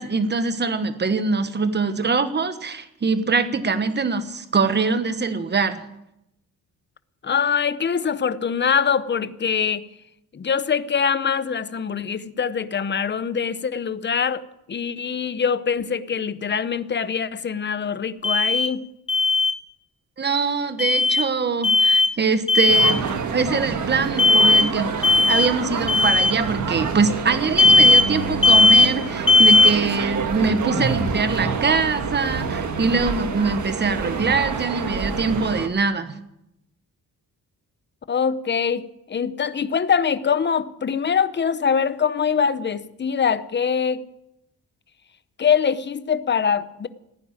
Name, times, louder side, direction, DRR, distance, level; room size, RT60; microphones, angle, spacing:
voice 1, 0.0-5.9 20.2-23.0 23.3-24.9 25.3-36.2, right 4 dB, 30° right, 1.2 m, -23 dB
voice 2, 7.2-9.8 10.3-14.4 14.7-18.8 38.1-44.0 45.4-46.9, left 6 dB, 30° left, 0.7 m, -23 dB
Alarm, 18.2-18.7 19.1-19.5 20.8-21.2 21.6-22.1 22.5-23.0 24.2-24.7 25.0-25.5 25.9-26.3 27.6-28.1 28.4-28.9 29.3-29.7, left 2 dB, 15° left, 1.1 m, -16 dB
sound 1, 22.7-35.7, right 5 dB, 55° right, 1.6 m, -27 dB
15.5 x 9.9 x 8.9 m
wide cardioid pair, 145°, 35 cm